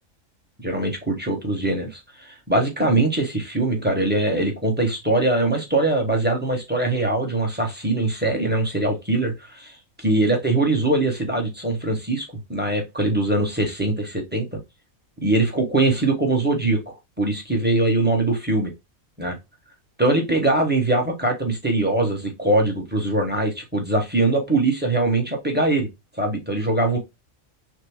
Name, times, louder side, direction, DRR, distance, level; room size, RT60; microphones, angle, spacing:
voice 1, 0.6-14.6 15.2-18.7 19.2-19.3 20.0-25.9 26.1-27.0, right 2 dB, 10° right, 2 dB, 0.8 m, -22 dB
6.1 x 2.2 x 3.5 m, 0.23 s
omnidirectional pair, 1.4 m